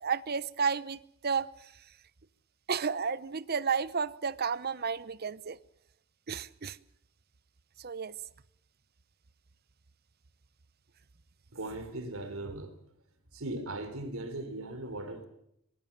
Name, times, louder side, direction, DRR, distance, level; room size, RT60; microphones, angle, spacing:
voice 1, 0.0-1.7 2.7-5.6 6.3-6.8 7.8-8.1, right 6 dB, 45° right, 17 dB, 0.8 m, -32 dB
voice 2, 11.5-12.7 13.3-15.3, right 2 dB, 75° right, 9 dB, 3.7 m, -38 dB
23.5 x 20.0 x 7.4 m, 0.75 s
head